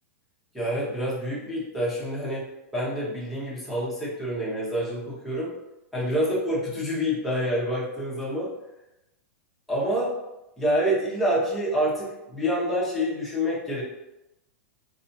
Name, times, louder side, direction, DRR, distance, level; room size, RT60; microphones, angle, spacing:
voice 1, 0.5-2.5 2.7-5.5 5.9-8.5 9.7-10.1 10.6-13.8, equal, ahead, -8 dB, 1.0 m, -27 dB
3.4 x 2.6 x 2.8 m, 0.93 s
supercardioid pair, 150°, 8 cm